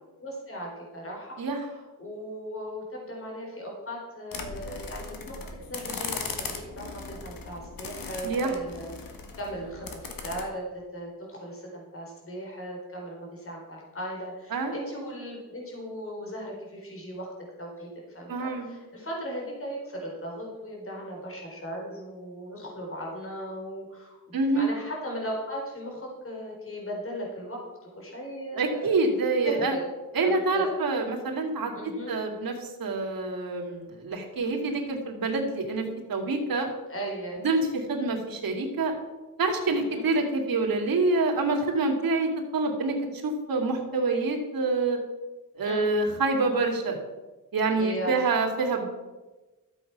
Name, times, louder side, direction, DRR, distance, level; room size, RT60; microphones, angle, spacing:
voice 1, 0.2-1.4 1.7-5.4 5.7-17.3 17.6-29.0 29.4-29.9 30.2-30.7 31.7-32.2 36.9-37.5 39.7-40.0 45.6-45.9 47.8-48.3, equal, 40° left, -2 dB, 4.1 m, -37 dB
sound 1, 4.3-10.4, left 4 dB, 80° left, 1.8 m, -38 dB
voice 2, 18.3-18.7 24.3-24.7 28.6-29.7 30.1-31.7 32.1-36.7 37.4-38.9 39.4-45.0 45.6-47.0 47.5-48.8, right 3 dB, 80° right, 2 dB, 2.5 m, -26 dB
13.5 x 7.8 x 5.9 m, 1.2 s
wide cardioid pair, 115°, 34 cm